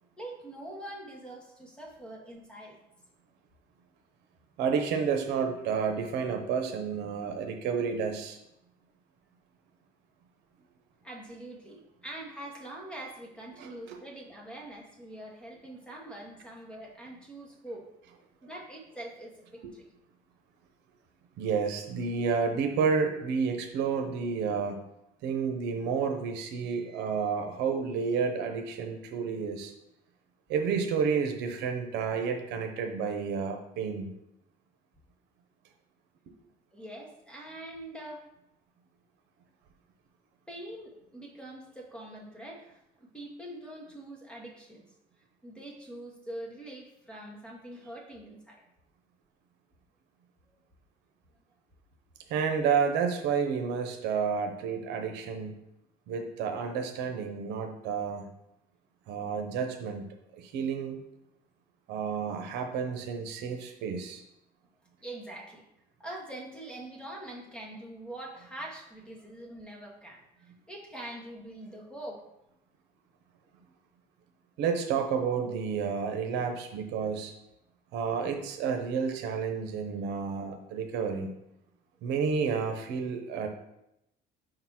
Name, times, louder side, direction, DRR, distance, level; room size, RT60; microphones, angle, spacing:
voice 1, 0.2-2.8 11.0-17.9 18.4-19.9 36.7-38.3 40.5-44.8 45.4-48.6 65.0-65.6 66.0-72.2, right 1 dB, 5° left, -1 dB, 1.6 m, -44 dB
voice 2, 4.6-8.4 13.6-14.0 19.6-19.7 21.4-24.8 25.2-29.7 30.5-34.1 52.3-55.6 56.1-58.3 59.1-60.0 60.3-61.0 61.9-64.2 74.6-77.3 77.9-81.3 82.0-83.5, right 6 dB, 85° right, 4 dB, 0.8 m, -30 dB
5.0 x 3.9 x 5.8 m, 0.85 s
cardioid pair, 110°, 17 cm